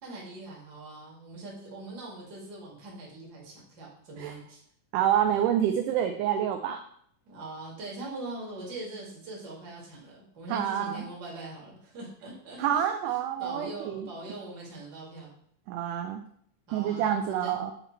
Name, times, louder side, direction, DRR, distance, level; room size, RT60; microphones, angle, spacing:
voice 1, 0.0-4.6 7.3-15.3 16.7-17.5, right 2 dB, 35° right, -4 dB, 1.9 m, -42 dB
voice 2, 4.9-6.8 10.5-11.0 12.6-14.1 15.7-16.2 16.7-17.7, right 10 dB, 80° right, 6 dB, 1.9 m, -27 dB
8.9 x 3.1 x 4.3 m, 0.66 s
omnidirectional pair, 3.9 m